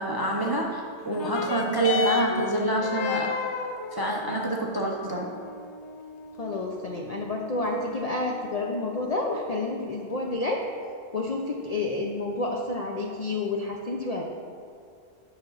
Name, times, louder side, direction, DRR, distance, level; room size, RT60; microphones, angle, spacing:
voice 1, 0.0-3.3 3.9-5.3, right 2 dB, 30° right, -1 dB, 0.4 m, -27 dB
sound 1, 1.0-10.0 10.8-10.9, left 5 dB, 70° left, 0.9 m, -34 dB
voice 2, 6.4-10.7 11.1-14.2, left 2 dB, 50° left, 0 dB, 0.4 m, -29 dB
8.2 x 6.1 x 3.9 m, 2.4 s
omnidirectional pair, 1.3 m